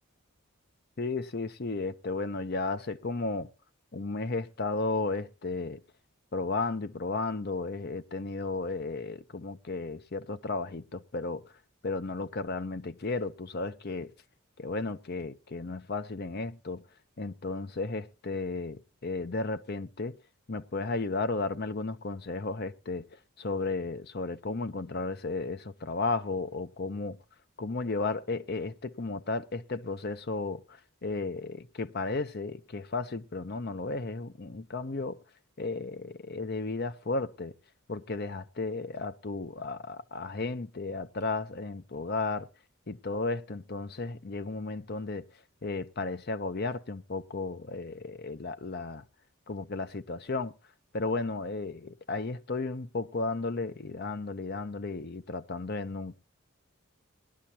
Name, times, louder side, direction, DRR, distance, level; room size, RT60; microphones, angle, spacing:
voice 1, 1.0-3.5 3.9-5.8 6.3-11.4 11.8-14.1 14.6-16.8 17.2-20.2 20.5-23.1 23.4-27.2 27.6-35.2 35.6-37.5 37.9-42.5 42.9-45.2 45.6-49.0 49.5-50.5 50.9-56.1, left 3 dB, 45° left, 0.7 m, -34 dB
19.0 x 11.5 x 2.8 m
head